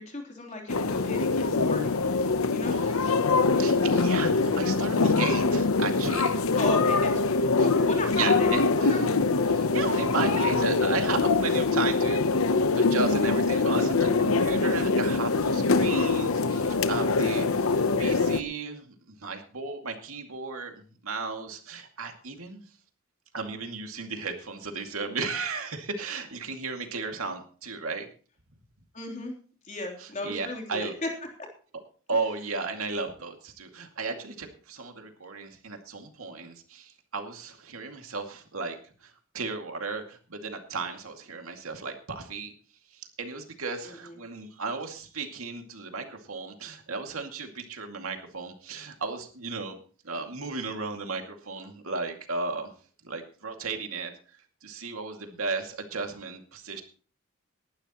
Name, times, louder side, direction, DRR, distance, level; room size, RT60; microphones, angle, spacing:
voice 1, 0.0-1.9 2.5-2.8 6.5-8.6 8.9-9.0 9.3-9.4 28.9-29.3 29.7-31.1 43.8-44.2, left 2 dB, 35° left, 1 dB, 3.4 m, -35 dB
sound 1, 0.7-18.4, left 3 dB, 85° left, 0.9 m, -24 dB
voice 2, 2.7-3.2 3.6-6.4 7.6-7.7 8.1-9.0 9.5-12.2 12.7-20.7 21.0-22.6 23.3-28.1 30.0-30.9 32.1-42.5 42.9-49.8 50.0-52.7 53.0-54.1 54.6-56.8, right 4 dB, 85° right, 4 dB, 2.3 m, -35 dB
19.0 x 12.0 x 3.0 m, 0.41 s
head